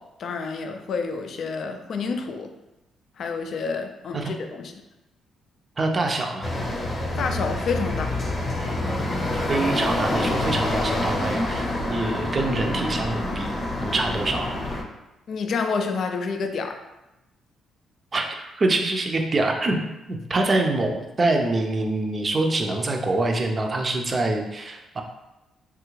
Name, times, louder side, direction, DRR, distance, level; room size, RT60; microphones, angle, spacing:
voice 1, 0.0-2.5 3.2-4.8 7.2-8.2 15.3-16.8, left 4 dB, 60° left, 5 dB, 0.3 m, -29 dB
voice 2, 5.8-6.5 9.3-13.5 13.8-14.5 18.1-19.8 20.1-25.0, right 2 dB, 35° right, 3 dB, 0.5 m, -25 dB
sound 1, 6.4-14.8, left 1 dB, 30° left, 0.7 m, -27 dB
3.3 x 2.4 x 3.1 m, 0.96 s
cardioid pair, 90°, 0 cm